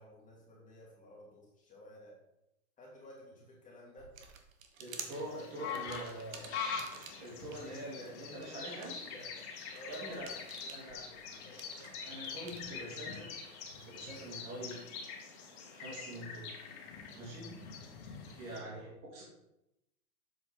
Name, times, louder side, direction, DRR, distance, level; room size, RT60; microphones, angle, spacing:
voice 1, 0.0-2.2 2.8-4.1 8.4-9.3 9.7-10.3 10.6-12.1 18.5-18.9, left 1 dB, 15° left, -4 dB, 2.7 m, -55 dB
sound 1, 4.0-7.5 8.0-12.6, right 6 dB, 60° right, 1.3 m, -51 dB
voice 2, 4.8-6.7 7.2-9.2 9.9-10.3 10.7-11.0 12.0-14.8 15.7-16.5 17.1-17.5 18.4-19.2, right 1 dB, 35° right, -5 dB, 2.9 m, -45 dB
sound 2, 5.1-18.6, left 6 dB, 50° left, 1.8 m, -44 dB
7.6 x 5.7 x 3.8 m, 0.86 s
hypercardioid pair, 125°, 44 cm